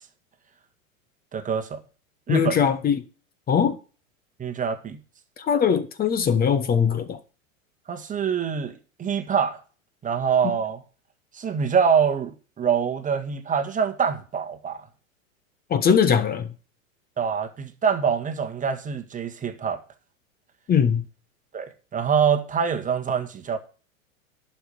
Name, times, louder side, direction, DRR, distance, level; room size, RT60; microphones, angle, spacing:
voice 1, 1.3-1.8 2.3-2.6 4.4-5.0 7.9-9.6 10.0-10.8 11.3-14.9 17.2-19.8 21.5-23.6, right 7 dB, 20° right, 1.7 m, -25 dB
voice 2, 2.3-3.0 3.5-3.8 5.4-7.2 10.4-10.6 15.7-16.5 20.7-21.0, left 7 dB, 20° left, 1.2 m, -21 dB
11.0 x 5.9 x 7.0 m
hypercardioid pair, 95°, 41 cm